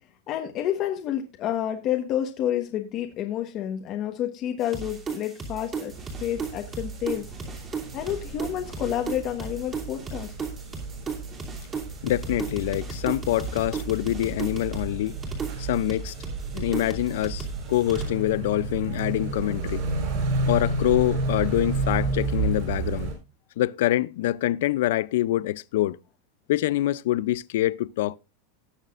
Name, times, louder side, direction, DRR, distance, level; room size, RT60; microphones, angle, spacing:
voice 1, 0.3-5.9 6.2-7.2 7.9-10.3, left 11 dB, 40° left, 1.2 m, -29 dB
sound 1, 4.6-18.1, right 4 dB, 20° right, 2.8 m, -35 dB
sound 2, 5.9-23.1, right 3 dB, 50° right, 5.6 m, -32 dB
voice 2, 12.0-15.2 15.6-16.1 16.5-19.8 20.5-23.1 23.6-26.0 26.5-28.2, left 14 dB, 75° left, 0.4 m, -25 dB
18.5 x 6.6 x 2.5 m
supercardioid pair, 150°, 0 cm